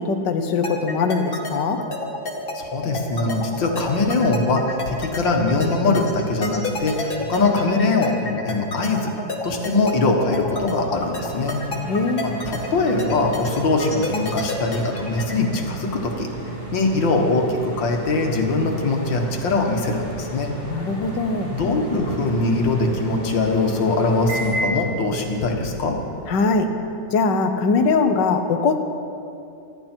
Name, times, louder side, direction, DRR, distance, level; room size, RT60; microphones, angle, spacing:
voice 1, 0.0-1.8 11.9-12.4 20.7-21.5 26.3-26.7 27.1-28.8, left 4 dB, 75° left, 7 dB, 1.6 m, -21 dB
sound 1, 0.6-15.3, left 2 dB, 30° left, 1.5 m, -30 dB
voice 2, 2.5-9.1 9.4-11.6 12.2-16.3 16.7-20.5 21.5-26.0, left 3 dB, 90° left, 2 dB, 2.3 m, -22 dB
sound 2, 9.8-26.3, right 2 dB, 45° right, 3.4 m, -33 dB
25.0 x 11.0 x 4.5 m, 2.7 s
omnidirectional pair, 2.0 m